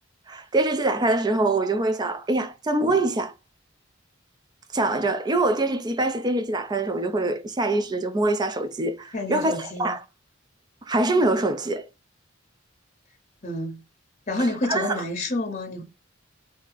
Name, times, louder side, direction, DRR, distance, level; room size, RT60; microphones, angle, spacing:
voice 1, 0.3-3.3 4.7-10.0 10.9-11.9 14.7-15.0, right 2 dB, 20° right, 0.4 m, -24 dB
voice 2, 9.1-9.9 13.4-13.8 14.3-15.8, left 1 dB, 35° left, 0.7 m, -28 dB
2.8 x 2.5 x 3.9 m
head